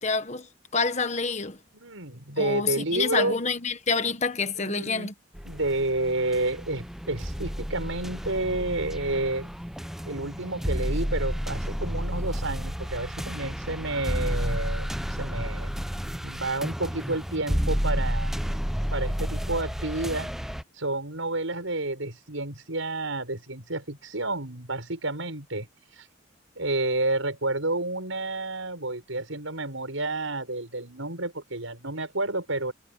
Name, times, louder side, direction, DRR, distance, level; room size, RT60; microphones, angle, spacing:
voice 1, 0.0-1.6 2.4-5.1, left 4 dB, 35° left, 1.4 m, -27 dB
voice 2, 1.7-3.4 4.6-5.1 5.4-9.5 10.1-15.7 16.2-18.3 18.9-20.3 20.8-25.7 26.0-26.1 26.6-32.7, right 2 dB, 75° right, 6.1 m, -30 dB
sound 1, 5.3-20.6, equal, ahead, 0.6 m, -31 dB
head